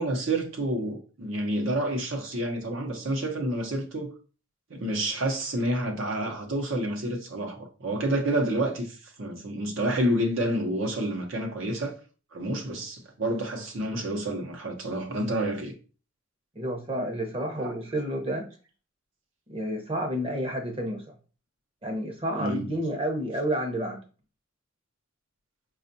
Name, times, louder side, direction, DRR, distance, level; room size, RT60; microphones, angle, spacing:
voice 1, 0.0-4.1 4.7-11.9 12.3-15.7 17.6-17.7 22.4-22.7, right 1 dB, 65° right, 0.8 m, -29 dB
voice 2, 16.6-18.5 19.5-21.0 21.8-24.0, equal, 25° right, 0.8 m, -30 dB
5.1 x 2.4 x 2.6 m
head